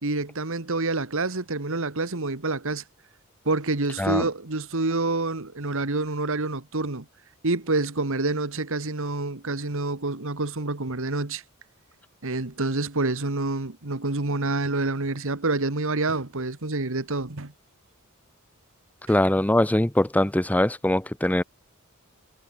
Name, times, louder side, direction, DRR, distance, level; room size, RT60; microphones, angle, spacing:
voice 1, 0.0-2.8 3.4-7.0 7.4-11.4 12.2-17.5, right 2 dB, 65° right, 1.8 m, -27 dB
voice 2, 19.1-21.4, left 1 dB, 5° left, 0.5 m, -22 dB
head